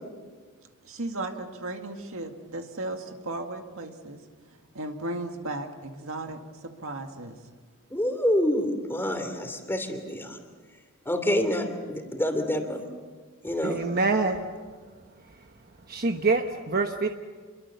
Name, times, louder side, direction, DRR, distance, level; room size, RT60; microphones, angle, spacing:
voice 1, 0.8-7.4, right 2 dB, 65° right, 4 dB, 2.1 m, -36 dB
voice 2, 7.9-10.4 11.0-12.8 13.4-13.8, equal, 10° left, 5 dB, 3.0 m, -27 dB
voice 3, 13.6-14.4 15.9-17.1, right 3 dB, 45° right, 5 dB, 1.1 m, -25 dB
28.0 x 23.0 x 7.0 m, 1.5 s
head